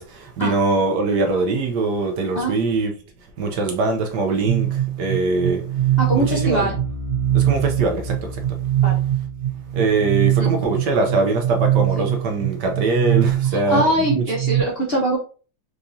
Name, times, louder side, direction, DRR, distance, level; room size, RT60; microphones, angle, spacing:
voice 1, 0.0-2.9 3.4-5.6 6.1-6.7 7.3-8.6 9.8-13.8 14.1-14.2, right 3 dB, 70° right, 1.2 m, -22 dB
sound 1, 4.5-14.6, right 12 dB, 90° right, 1.6 m, -22 dB
voice 2, 6.0-6.7 8.8-9.0 10.4-10.5 13.5-15.2, right 1 dB, 50° left, 0.8 m, -22 dB
4.7 x 2.7 x 2.6 m
omnidirectional pair, 2.1 m